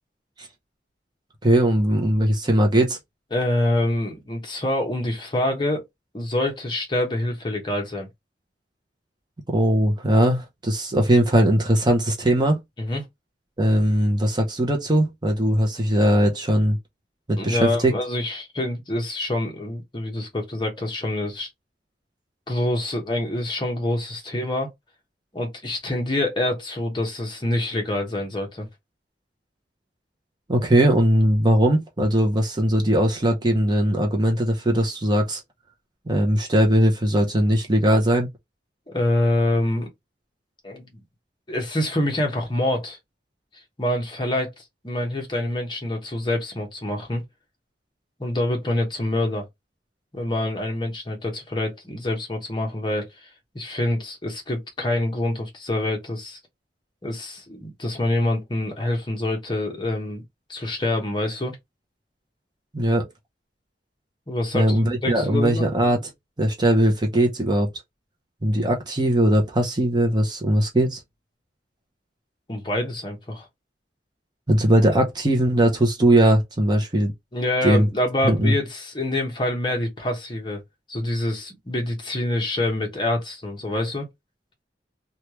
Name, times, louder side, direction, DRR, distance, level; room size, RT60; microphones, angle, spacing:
voice 1, 1.4-3.0 9.5-12.6 13.6-16.8 17.3-17.9 30.5-35.4 36.1-38.3 62.7-63.1 64.5-66.1 66.4-67.7 68.4-71.0 74.5-77.1 77.6-77.9 78.2-78.5, right 1 dB, 25° right, 0.7 m, -20 dB
voice 2, 3.3-5.8 6.1-8.1 12.8-13.1 17.4-21.5 22.5-24.7 25.3-28.7 38.9-39.9 40.6-41.0 41.5-43.0 43.8-47.2 48.2-49.5 50.1-53.1 53.5-56.4 57.0-60.2 60.5-61.6 64.3-65.6 72.5-73.4 77.3-80.6 80.9-84.1, left 1 dB, 25° left, 1.0 m, -26 dB
3.1 x 2.3 x 3.0 m
head